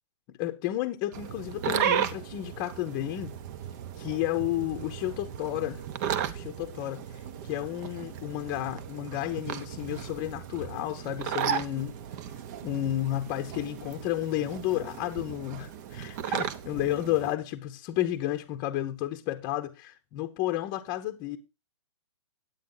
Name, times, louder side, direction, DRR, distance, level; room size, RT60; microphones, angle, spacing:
voice 1, 0.4-3.4 4.0-5.8 6.3-7.0 7.5-11.9 12.6-21.4, left 14 dB, 30° left, 0.8 m, -32 dB
sound 1, 1.1-17.3, right 9 dB, 35° right, 0.8 m, -35 dB
9.4 x 8.6 x 3.8 m
hypercardioid pair, 150°, 16 cm